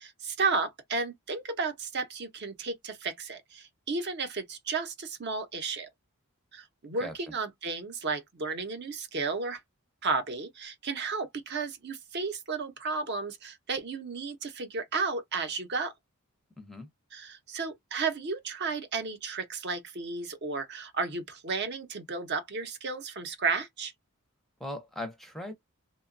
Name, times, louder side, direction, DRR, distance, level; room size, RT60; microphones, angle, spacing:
voice 1, 0.0-5.9 6.5-9.6 10.0-15.9 17.1-23.9, right 4 dB, 50° right, 0.6 m, -33 dB
voice 2, 7.0-7.3 16.6-16.9 24.6-25.5, left 1 dB, ahead, 0.5 m, -39 dB
2.8 x 2.2 x 2.5 m
head